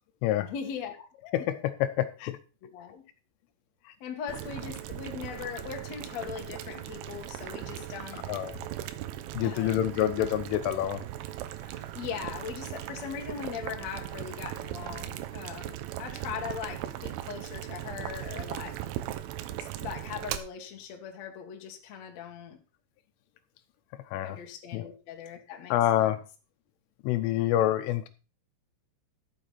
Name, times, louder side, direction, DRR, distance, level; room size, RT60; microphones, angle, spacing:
voice 1, 0.4-1.1 2.6-3.0 4.0-8.3 9.4-10.0 11.9-18.8 19.6-22.6 24.2-26.1, left 7 dB, 60° left, 1.8 m, -40 dB
voice 2, 1.3-2.4 8.3-8.6 9.3-11.0 24.1-24.4 24.7-24.8 25.7-26.2 27.0-28.1, left 12 dB, 80° left, 3.1 m, -27 dB
Boiling, 4.3-20.4, right 13 dB, 85° right, 3.2 m, -38 dB
12.5 x 8.1 x 4.2 m
omnidirectional pair, 5.9 m